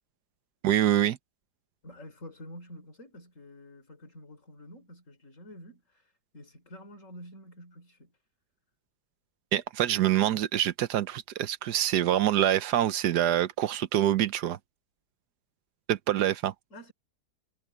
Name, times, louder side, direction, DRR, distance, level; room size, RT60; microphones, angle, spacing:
voice 1, 0.6-1.2 9.5-14.6 15.9-16.5, right 12 dB, 80° right, 1.4 m, -25 dB
voice 2, 1.8-5.8 6.3-8.1 16.7-16.9, equal, 50° left, 4.3 m, -48 dB
omnidirectional pair, 1.7 m